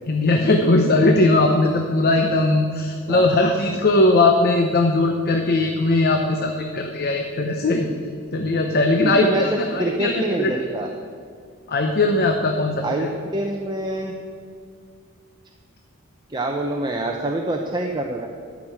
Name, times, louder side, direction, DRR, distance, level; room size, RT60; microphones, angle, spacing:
voice 1, 0.1-7.9 8.3-10.5 11.7-13.1, left 2 dB, 50° left, 4 dB, 0.9 m, -19 dB
voice 2, 9.0-9.4 9.8-10.9 12.8-14.1 16.3-18.3, right 1 dB, 20° right, 1 dB, 0.8 m, -26 dB
12.5 x 6.3 x 8.7 m, 2.2 s
head